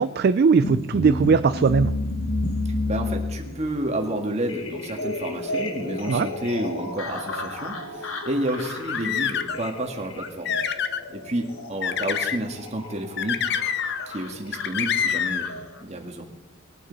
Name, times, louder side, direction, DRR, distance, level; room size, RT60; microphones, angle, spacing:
voice 1, 0.0-1.9 6.1-6.3, right 5 dB, 50° right, 12 dB, 0.3 m, -19 dB
sound 1, 0.6-15.8, left 2 dB, 85° left, 1.5 m, -32 dB
voice 2, 2.8-10.6 11.1-13.4 14.1-16.3, right 1 dB, 30° right, 2 dB, 1.7 m, -30 dB
sound 2, 8.6-9.7 10.2-11.0 11.8-12.4 13.2-14.2 14.5-15.5, left 8 dB, 55° left, 0.7 m, -26 dB
21.0 x 9.0 x 4.0 m, 1.0 s
head